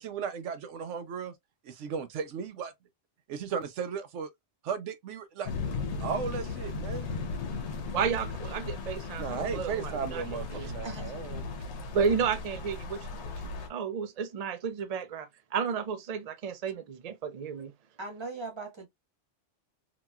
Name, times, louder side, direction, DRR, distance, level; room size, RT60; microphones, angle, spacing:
voice 1, 0.0-1.3 1.7-2.7 3.3-4.3 4.6-5.5 6.0-7.1 9.2-11.4, right 6 dB, 85° right, 1.0 m, -35 dB
sound 1, 5.5-13.7, left 4 dB, 75° left, 1.1 m, -36 dB
voice 2, 7.9-10.7 11.9-17.7, right 6 dB, 60° right, 0.4 m, -32 dB
voice 3, 18.0-18.9, right 3 dB, 25° right, 1.0 m, -39 dB
2.9 x 2.9 x 2.2 m
omnidirectional pair, 1.2 m